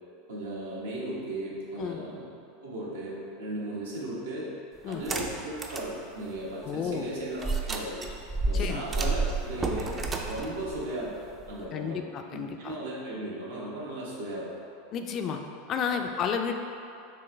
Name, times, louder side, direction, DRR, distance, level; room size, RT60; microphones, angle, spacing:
voice 1, 0.3-2.3 2.6-4.5 4.9-8.1 8.4-10.0 10.3-11.2 11.5-12.0 12.3-14.5 15.9-16.0, right 1 dB, 80° right, -6 dB, 1.0 m, -36 dB
sound 1, 4.9-5.9 6.4-6.5 7.4-11.7, right 3 dB, 25° right, 0.4 m, -31 dB
voice 2, 6.6-7.1 8.5-9.2 11.7-12.8 14.9-15.4 15.7-16.5, left 7 dB, 40° left, 4 dB, 0.3 m, -32 dB
4.6 x 3.1 x 3.1 m, 2.6 s
hypercardioid pair, 90°, 0 cm